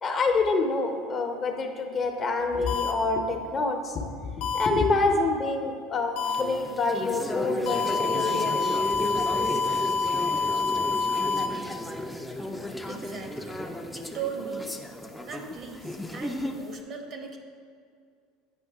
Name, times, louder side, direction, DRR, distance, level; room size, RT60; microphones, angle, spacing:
voice 1, 0.0-4.1 4.3-8.5 8.9-9.1, left 3 dB, 35° left, 4 dB, 0.8 m, -27 dB
sound 1, 2.7-2.9 4.4-4.7 6.2-6.4 7.7-11.5, left 4 dB, 70° left, 0.6 m, -27 dB
sound 2, 6.2-16.8, left 1 dB, 5° left, 0.6 m, -34 dB
voice 2, 12.9-13.6 13.9-14.7 15.2-17.4, right 6 dB, 45° right, 4 dB, 1.1 m, -38 dB
8.8 x 5.3 x 3.5 m, 2.2 s
hypercardioid pair, 80°, 0 cm